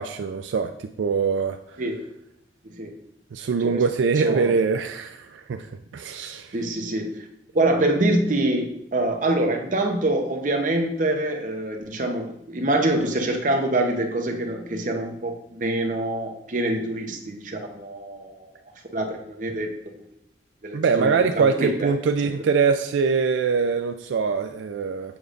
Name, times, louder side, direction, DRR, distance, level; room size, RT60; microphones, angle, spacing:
voice 1, 0.0-1.6 3.3-6.6 20.7-25.2, right 5 dB, 85° right, 8 dB, 0.3 m, -23 dB
voice 2, 4.2-4.6 6.5-7.2 7.5-18.5 18.9-19.7 20.6-21.9 22.2-22.3, right 1 dB, 45° right, 3 dB, 0.8 m, -25 dB
7.0 x 6.5 x 2.5 m, 0.79 s
head